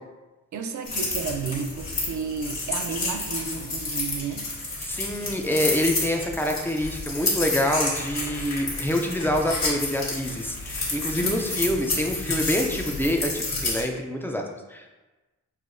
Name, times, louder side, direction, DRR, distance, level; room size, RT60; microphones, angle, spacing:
voice 1, 0.5-4.5 11.2-11.5, right 6 dB, 65° right, 6 dB, 0.5 m, -32 dB
sound 1, 0.8-13.8, left 2 dB, 55° left, 1.3 m, -30 dB
voice 2, 4.8-14.9, left 1 dB, 5° left, 2 dB, 0.3 m, -26 dB
5.7 x 2.7 x 2.6 m, 1.1 s
wide cardioid pair, 145°, 31 cm